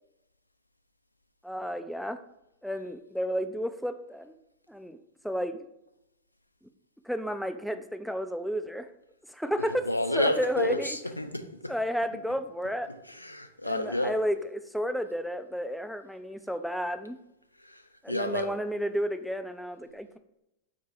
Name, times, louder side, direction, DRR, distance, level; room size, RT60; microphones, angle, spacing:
voice 1, 1.4-2.2 2.6-4.3 4.7-5.0 5.2-5.7 7.0-8.9 9.3-11.0 11.7-12.9 13.6-17.2 18.0-20.2, equal, ahead, 0.3 m, -32 dB
voice 2, 9.9-11.7 13.1-14.2 17.6-17.8 18.1-18.5, left 1 dB, 85° left, 0.4 m, -30 dB
4.9 x 2.2 x 4.5 m
figure-of-eight pair, 90°, 0 cm